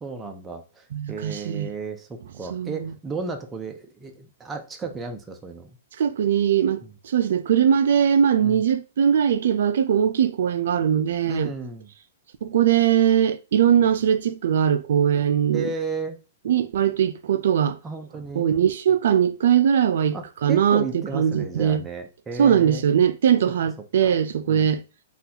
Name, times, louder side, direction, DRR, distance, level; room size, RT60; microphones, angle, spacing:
voice 1, 0.0-5.8 6.8-6.9 8.4-8.6 11.2-11.9 15.5-16.2 17.8-18.5 20.1-22.8 23.8-24.2 24.5-24.7, right 4 dB, 15° right, 0.5 m, -34 dB
voice 2, 0.9-1.7 2.5-2.9 6.0-11.5 12.4-15.6 16.5-17.8 18.4-21.8 22.4-24.8, right 8 dB, 70° right, 0.3 m, -21 dB
3.9 x 2.3 x 2.7 m
hypercardioid pair, 150°, 0 cm